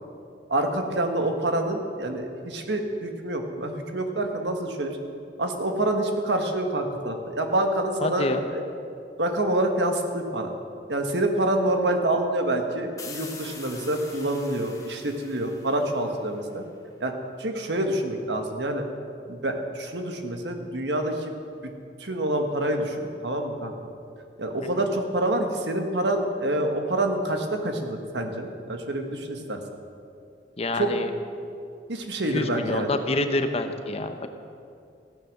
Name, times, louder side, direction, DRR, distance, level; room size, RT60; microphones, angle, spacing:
voice 1, 0.5-5.0 5.4-8.6 9.2-10.5 10.9-16.6 17.0-17.1 17.4-18.8 19.3-21.3 22.0-23.7 24.4-29.6 30.7-30.9 31.9-32.9, right 1 dB, 75° right, 4 dB, 1.6 m, -27 dB
voice 2, 8.0-8.4 24.6-24.7 30.6-31.1 32.3-34.3, left 2 dB, 35° left, 7 dB, 0.9 m, -27 dB
sound 1, 13.0-16.6, left 4 dB, 20° left, 2.0 m, -44 dB
15.5 x 9.7 x 6.6 m, 2.4 s
head